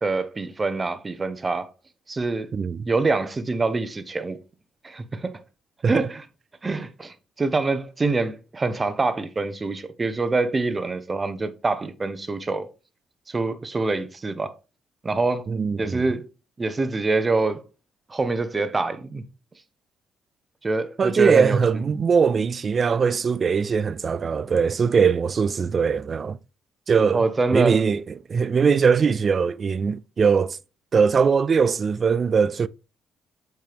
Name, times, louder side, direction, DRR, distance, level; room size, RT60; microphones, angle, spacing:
voice 1, 0.0-1.7 2.1-2.5 2.8-4.4 4.8-5.4 5.9-6.1 6.6-12.7 13.3-14.5 15.0-15.5 15.8-16.3 16.6-17.6 18.1-19.2 20.6-21.8 27.1-27.9, right 3 dB, 25° right, 0.8 m, -25 dB
voice 2, 2.5-2.8 5.8-6.1 15.5-16.0 21.0-26.4 26.9-27.2 27.5-28.0 28.3-30.6 30.9-32.7, right 6 dB, 45° right, 0.3 m, -21 dB
7.3 x 4.6 x 3.4 m
cardioid pair, 90°, 0 cm